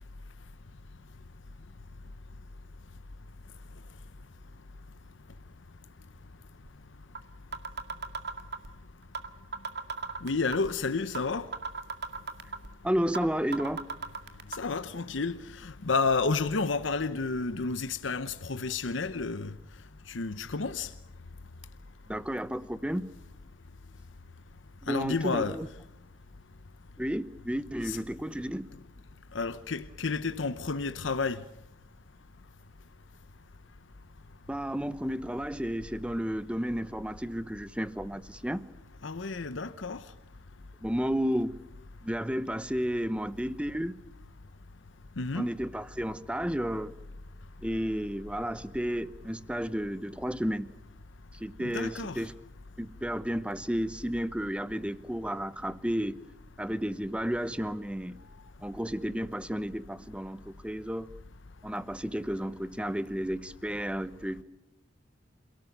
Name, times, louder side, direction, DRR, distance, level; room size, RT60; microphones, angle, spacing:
sound 1, 6.7-6.8 7.2-7.3 7.5-8.7 9.2-9.3 9.5-10.7 11.2-11.3 11.5-12.7 13.2-13.3 13.5-14.6, right 4 dB, 60° right, 2.1 m, -35 dB
voice 1, 10.2-11.5 14.6-19.5 20.1-20.9 24.9-25.6 27.8-28.0 29.3-31.4 39.0-40.0 45.2-45.5 51.6-52.2, left 4 dB, 80° left, 0.9 m, -31 dB
voice 2, 12.8-13.9 22.1-23.1 24.8-25.7 27.0-28.7 34.5-38.7 40.8-41.7 42.0-44.0 45.3-46.9 47.6-50.7 51.3-52.3 52.8-56.2 56.6-58.2 58.6-61.1 61.6-64.4, equal, 5° right, 0.9 m, -32 dB
28.5 x 18.0 x 9.3 m
head